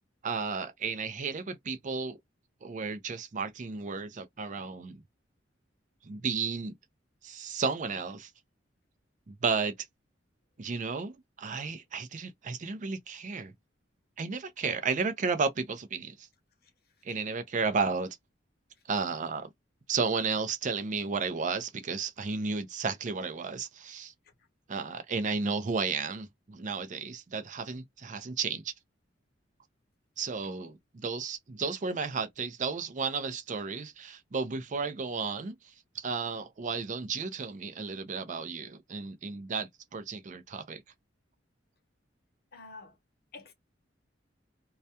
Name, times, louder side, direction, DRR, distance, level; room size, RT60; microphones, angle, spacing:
voice 1, 0.2-2.2 2.6-5.0 6.0-6.7 7.2-8.3 9.3-9.7 10.6-13.5 14.2-16.3 17.0-18.2 18.9-19.5 19.9-24.1 24.7-28.7 30.2-30.8 31.0-35.6 35.9-40.8, right 5 dB, 40° right, 0.5 m, -33 dB
voice 2, 30.2-30.8 42.5-43.0 43.3-43.5, left 3 dB, 55° left, 0.7 m, -49 dB
2.3 x 2.1 x 2.7 m
head